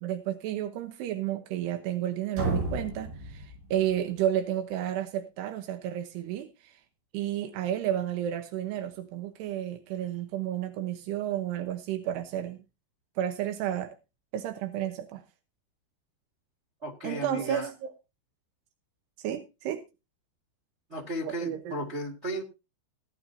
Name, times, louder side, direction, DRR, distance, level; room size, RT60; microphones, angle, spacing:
voice 1, 0.0-6.5 7.1-12.6 13.2-14.0 14.3-15.2 17.0-17.9 19.2-19.8 21.2-21.8, right 11 dB, 85° right, 7 dB, 3.1 m, -31 dB
sound 1, 2.3-4.2, right 2 dB, 70° right, 5.5 m, -33 dB
voice 2, 16.8-17.7 20.9-22.4, right 1 dB, 35° right, -1 dB, 1.1 m, -34 dB
17.0 x 11.0 x 2.8 m, 0.28 s
omnidirectional pair, 4.8 m